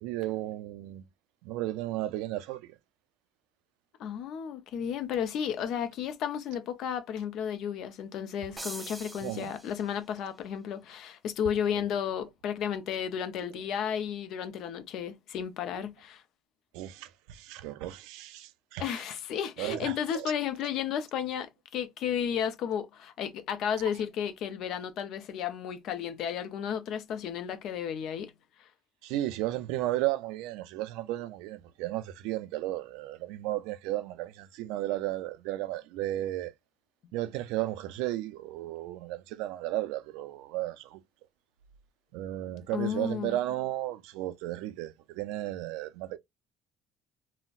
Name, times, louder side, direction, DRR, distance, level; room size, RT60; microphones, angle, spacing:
voice 1, 0.0-1.0 1.4-2.6 9.2-9.5 16.7-18.8 19.6-20.3 29.0-36.5 37.1-41.0 42.1-46.2, right 15 dB, 90° right, 0.3 m, -34 dB
voice 2, 4.0-16.2 18.8-28.3 28.6-28.7 42.7-43.4, left 8 dB, 65° left, 0.5 m, -33 dB
sound 1, 8.6-10.2, right 1 dB, 10° right, 0.6 m, -43 dB
3.8 x 2.1 x 2.4 m
cardioid pair, 115°, 0 cm